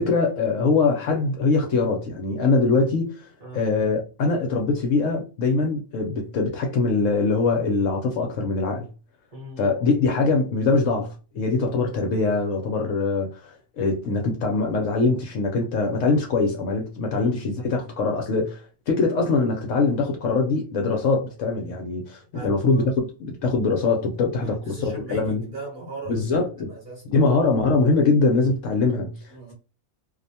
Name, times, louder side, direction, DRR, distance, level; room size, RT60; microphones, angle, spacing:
voice 1, 0.0-3.3 3.5-8.9 9.6-25.4 26.1-26.7 27.1-29.5, left 3 dB, 65° left, 0.8 m, -23 dB
voice 2, 9.3-9.7 17.1-17.3 22.3-22.9 24.4-27.0 29.3-29.5, right 2 dB, 40° right, 0.9 m, -39 dB
2.6 x 2.1 x 2.6 m
omnidirectional pair, 1.6 m